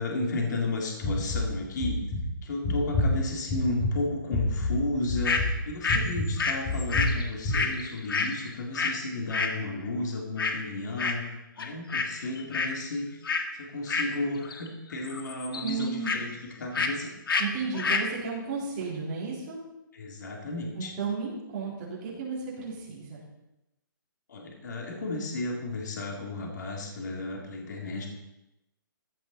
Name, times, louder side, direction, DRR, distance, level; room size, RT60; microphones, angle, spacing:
voice 1, 0.0-2.0 2.4-11.2 11.6-13.1 13.6-17.1 19.9-20.9 24.3-28.1, left 2 dB, 55° left, 0 dB, 3.0 m, -33 dB
sound 1, 1.0-1.5 1.8-2.2 2.6-3.1 3.5-3.9 4.3-4.7 5.1-5.5 5.9-6.3 6.6-7.1 7.4-7.6, left 3 dB, 20° left, 5.3 m, -27 dB
sound 2, 5.2-5.4 5.8-9.0 9.3-9.6 10.4-10.6 11.0-11.3 11.6-12.1 12.4-12.8 13.2-13.5 13.9-14.7 14.9-16.2 16.7-17.0 17.3-17.5 17.7-18.1, left 4 dB, 85° left, 1.8 m, -28 dB
voice 2, 15.6-16.1 17.4-19.6 20.8-23.2, right 4 dB, 25° right, -6 dB, 4.0 m, -33 dB
15.5 x 10.5 x 4.2 m, 0.92 s
hypercardioid pair, 170°, 11 cm